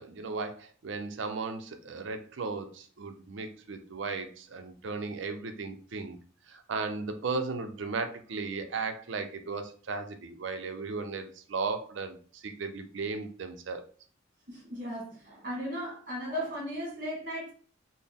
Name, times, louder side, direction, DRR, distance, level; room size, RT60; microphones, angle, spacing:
voice 1, 0.0-6.2 6.5-13.8, right 4 dB, 70° right, 8 dB, 0.5 m, -36 dB
voice 2, 14.5-17.5, equal, 45° right, -2 dB, 1.6 m, -36 dB
4.1 x 2.0 x 3.5 m, 0.43 s
head